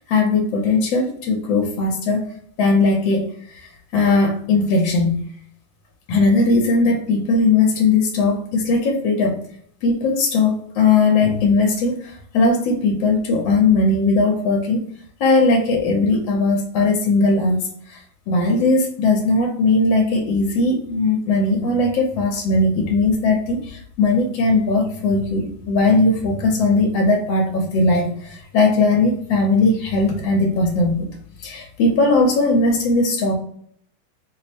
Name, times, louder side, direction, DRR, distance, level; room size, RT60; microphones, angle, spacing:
voice 1, 0.0-2.2 2.6-5.2 6.1-9.4 9.8-14.9 15.2-31.1 31.4-33.4, left 3 dB, 75° left, 1 dB, 1.3 m, -19 dB
3.3 x 2.0 x 4.2 m, 0.65 s
omnidirectional pair, 2.2 m